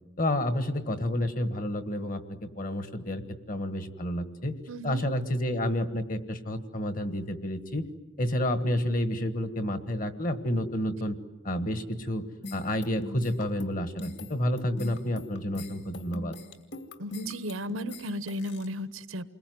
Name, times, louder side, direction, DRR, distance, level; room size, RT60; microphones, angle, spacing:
voice 1, 0.2-4.6 4.8-7.9 8.2-11.2 11.4-12.2 12.5-16.4, left 1 dB, 40° left, 11 dB, 1.5 m, -30 dB
voice 2, 4.7-5.0 17.0-19.4, equal, 80° right, 14 dB, 1.1 m, -35 dB
sound 1, 12.4-18.7, left 1 dB, 55° left, 2.5 m, -41 dB
29.5 x 21.5 x 9.4 m, 1.2 s
head